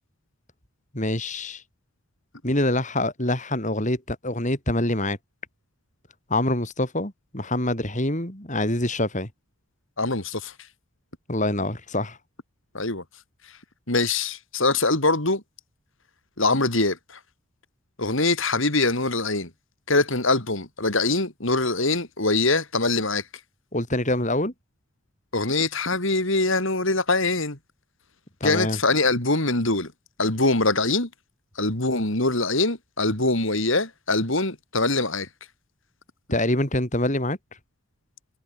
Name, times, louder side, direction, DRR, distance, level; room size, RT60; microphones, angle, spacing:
voice 1, 0.9-1.6 2.4-5.2 6.3-9.3 11.3-12.2 23.7-24.5 28.4-28.8 36.3-37.4, left 1 dB, 35° left, 5.0 m, -25 dB
voice 2, 10.0-10.5 12.7-13.0 13.9-15.4 16.4-17.2 18.0-19.5 19.9-23.2 25.3-27.6 28.4-29.9 30.2-31.1 31.6-35.3, left 2 dB, 60° left, 4.0 m, -23 dB
head